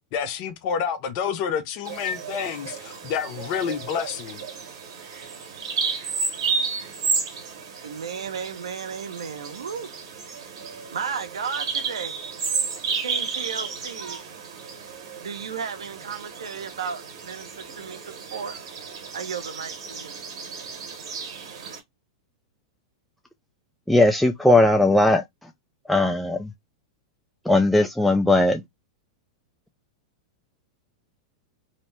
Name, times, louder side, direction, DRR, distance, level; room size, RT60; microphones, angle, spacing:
voice 1, 0.1-4.4, left 7 dB, 50° left, 0.6 m, -28 dB
Bird vocalization bird call bird song, 1.8-21.8, right 5 dB, 70° right, 1.1 m, -32 dB
voice 2, 7.8-9.9 10.9-12.1 12.5-12.6 13.0-14.2 15.2-18.6 19.1-20.1, right 6 dB, 85° right, 0.7 m, -34 dB
voice 3, 23.9-25.5 25.9-26.5 27.5-28.6, left 2 dB, 5° left, 0.3 m, -19 dB
2.8 x 2.0 x 3.1 m
hypercardioid pair, 110°, 3 cm